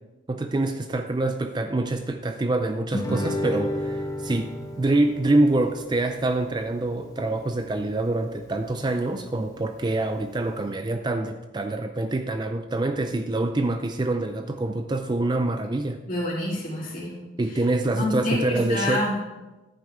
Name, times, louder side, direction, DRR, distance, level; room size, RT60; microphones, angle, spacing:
voice 1, 0.3-16.0 17.4-19.0, right 2 dB, 20° right, 7 dB, 0.4 m, -25 dB
Guitar, 2.9-8.0, left 1 dB, 15° left, 1.0 m, -33 dB
voice 2, 16.1-17.1 17.9-19.2, left 1 dB, 40° left, -5 dB, 3.2 m, -27 dB
11.0 x 9.2 x 3.6 m, 1.1 s
head